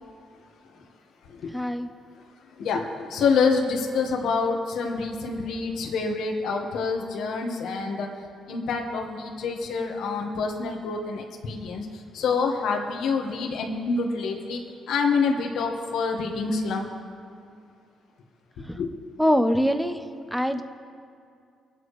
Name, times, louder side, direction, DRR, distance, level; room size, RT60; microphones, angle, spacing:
voice 1, 1.5-1.9 18.7-18.8 19.2-20.6, equal, ahead, 7 dB, 0.9 m, -24 dB
voice 2, 2.6-8.1 8.5-11.8 12.1-14.6 14.9-16.9 18.8-18.9, left 4 dB, 80° left, 1 dB, 1.4 m, -26 dB
25.5 x 8.7 x 3.2 m, 2.3 s
cardioid pair, 90°, 0 cm